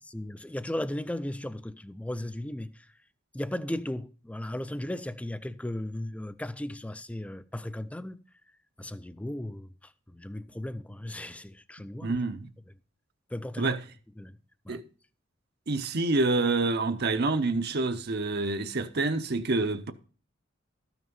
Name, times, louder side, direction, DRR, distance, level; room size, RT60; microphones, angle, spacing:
voice 1, 0.0-2.9 3.3-8.2 8.8-12.2 12.7-12.8 13.3-13.7 14.2-14.4 14.6-14.8, left 1 dB, 5° left, 0.4 m, -36 dB
voice 2, 12.0-12.5 13.6-13.8 14.7-14.8 15.7-19.9, right 3 dB, 55° right, 0.8 m, -27 dB
13.0 x 6.0 x 5.4 m
head